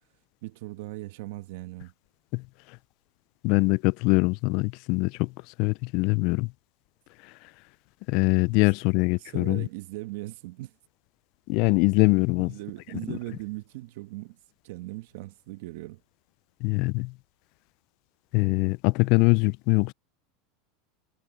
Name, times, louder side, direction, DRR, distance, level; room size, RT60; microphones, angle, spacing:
voice 1, 0.4-1.9 8.6-8.7 9.2-10.7 12.4-14.4 14.6-16.0, right 19 dB, 70° right, 1.3 m, -39 dB
voice 2, 3.4-5.3 5.6-6.5 8.1-9.7 11.5-12.5 13.1-13.2 16.6-17.1 18.3-19.9, left 26 dB, 55° left, 0.4 m, -23 dB
supercardioid pair, 130°, 0 cm